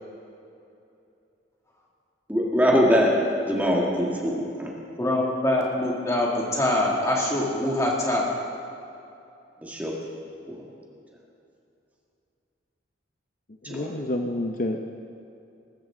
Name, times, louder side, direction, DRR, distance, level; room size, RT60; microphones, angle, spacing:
voice 1, 2.3-3.2 3.5-4.7 9.6-9.9 10.5-10.6 13.7-13.9, equal, 10° right, -3 dB, 1.8 m, -22 dB
voice 2, 5.0-8.3, left 1 dB, 15° left, -3 dB, 2.4 m, -24 dB
voice 3, 13.7-14.9, left 1 dB, 45° left, 3 dB, 0.7 m, -28 dB
20.0 x 14.0 x 3.8 m, 2.7 s
head